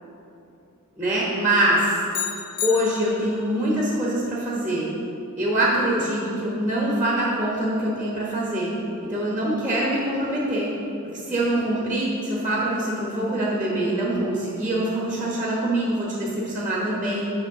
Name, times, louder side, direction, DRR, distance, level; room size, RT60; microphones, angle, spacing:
voice 1, 1.0-2.0 2.6-4.9 5.4-8.7 9.1-10.7 11.1-17.3, right 1 dB, 10° right, -5 dB, 1.1 m, -24 dB
sound 1, 2.1-3.5, left 10 dB, 70° left, 0.5 m, -31 dB
8.1 x 3.4 x 6.6 m, 2.8 s
head